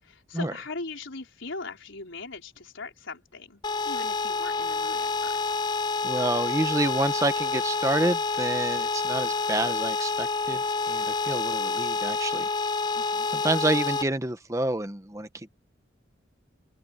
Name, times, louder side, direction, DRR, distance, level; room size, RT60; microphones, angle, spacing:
voice 1, 0.0-5.5 12.9-13.3, left 3 dB, 90° left, 4.3 m, -40 dB
sound 1, 3.6-14.0, left 4 dB, 20° left, 0.3 m, -28 dB
voice 2, 6.0-12.5 13.3-15.5, right 1 dB, 15° right, 1.0 m, -28 dB
open air
head